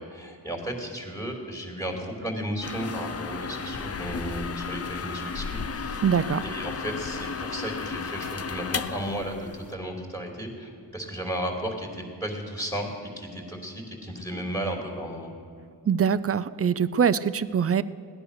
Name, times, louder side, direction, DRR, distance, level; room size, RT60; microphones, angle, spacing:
voice 1, 0.0-6.0 6.4-15.3, equal, 5° left, 0 dB, 2.7 m, -34 dB
sound 1, 2.6-9.7, left 5 dB, 35° left, 0.6 m, -34 dB
voice 2, 6.0-6.4 15.9-17.8, right 7 dB, 35° right, 16 dB, 0.5 m, -23 dB
17.0 x 10.5 x 6.6 m, 2.5 s
cardioid pair, 70°, 41 cm